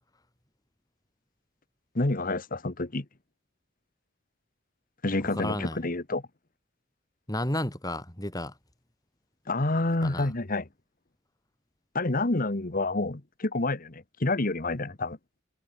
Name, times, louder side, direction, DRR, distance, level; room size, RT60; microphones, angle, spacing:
voice 1, 1.9-3.0 5.0-6.2 9.5-10.7 11.9-15.2, left 2 dB, 45° left, 1.4 m, -28 dB
voice 2, 5.3-5.8 7.3-8.5 10.0-10.3, left 1 dB, 20° left, 4.1 m, -32 dB
head